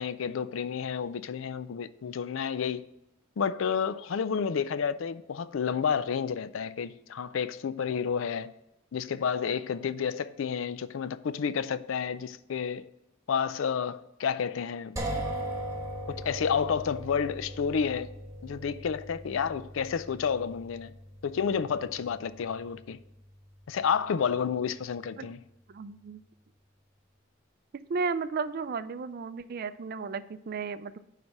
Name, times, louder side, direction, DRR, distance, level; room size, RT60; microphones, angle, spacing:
voice 1, 0.0-2.9 3.4-8.5 8.9-12.9 13.3-15.0 16.1-18.1 18.4-21.0 21.2-23.0 23.7-25.4, left 6 dB, 75° left, 0.4 m, -30 dB
sound 1, 15.0-24.7, right 1 dB, 15° right, 1.2 m, -40 dB
voice 2, 25.7-26.2 27.9-31.0, right 4 dB, 50° right, 0.4 m, -34 dB
9.5 x 3.3 x 5.9 m
head